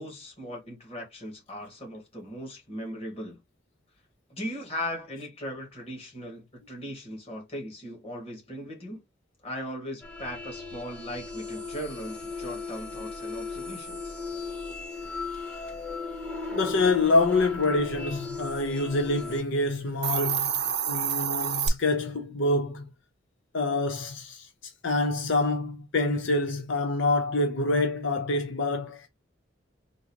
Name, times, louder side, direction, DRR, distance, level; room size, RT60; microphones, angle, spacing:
voice 1, 0.0-3.4 4.3-9.0 9.4-14.2, equal, 30° left, 1.5 m, -38 dB
sound 1, 10.0-19.4, left 3 dB, 5° left, 1.0 m, -37 dB
voice 2, 16.5-22.9 23.5-29.1, left 2 dB, 75° left, 0.6 m, -26 dB
Hiss, 19.9-21.7, right 8 dB, 55° right, 0.6 m, -28 dB
3.8 x 2.5 x 2.9 m
head